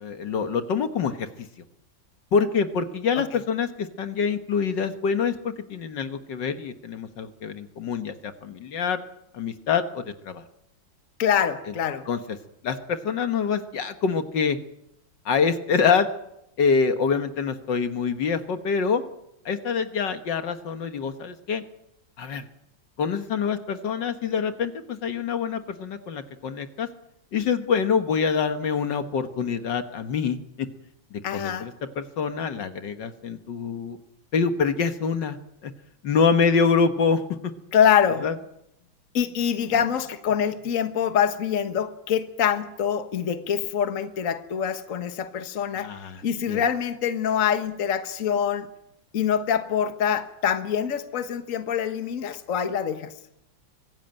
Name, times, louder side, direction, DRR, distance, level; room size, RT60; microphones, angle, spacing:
voice 1, 0.0-1.3 2.3-9.0 9.3-10.4 12.1-12.2 12.6-14.6 15.3-16.1 16.6-19.0 19.5-21.6 22.2-22.4 23.0-26.9 27.3-30.7 31.1-34.0 34.3-35.4 35.6-35.7 36.0-37.2 38.2-38.3 45.8-46.2 46.5-46.6, left 5 dB, 65° left, 9 dB, 2.0 m, -25 dB
voice 2, 11.2-12.0 31.2-31.7 37.7-38.3 39.1-45.9 46.2-48.7 49.1-53.1, left 8 dB, 45° left, 9 dB, 1.6 m, -25 dB
24.5 x 16.5 x 9.0 m, 0.82 s
omnidirectional pair, 2.1 m